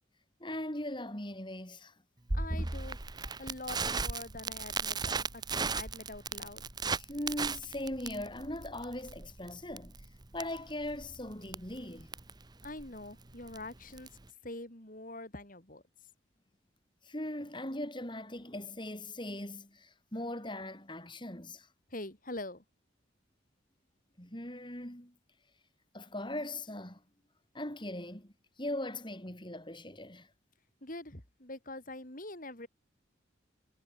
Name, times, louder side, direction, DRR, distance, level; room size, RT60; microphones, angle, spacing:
voice 1, 0.4-1.9 3.2-3.3 7.0-9.9 10.3-12.1 17.0-21.7 24.2-25.1 25.9-27.0 27.5-28.3 28.6-30.3, left 1 dB, 25° left, 7.0 m, -40 dB
voice 2, 2.3-3.0 3.4-6.6 12.6-14.2 14.4-16.1 21.9-22.6 30.8-32.7, left 2 dB, 45° left, 4.8 m, -44 dB
Crackle, 2.3-14.3, right 4 dB, 20° right, 0.9 m, -37 dB
head